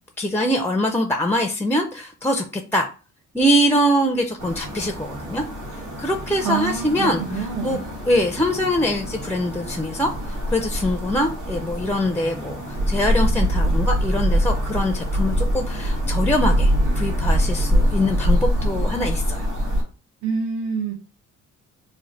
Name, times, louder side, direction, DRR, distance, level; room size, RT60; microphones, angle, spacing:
voice 1, 0.2-2.9 3.3-5.4 6.0-7.8 8.0-19.5, equal, 5° left, 4 dB, 0.4 m, -23 dB
sound 1, 4.4-19.8, equal, 90° right, 1.5 m, -24 dB
voice 2, 6.4-7.8 20.2-20.9, right 6 dB, 70° right, 0 dB, 0.8 m, -26 dB
3.2 x 2.1 x 3.9 m, 0.35 s
cardioid pair, 90°, 30 cm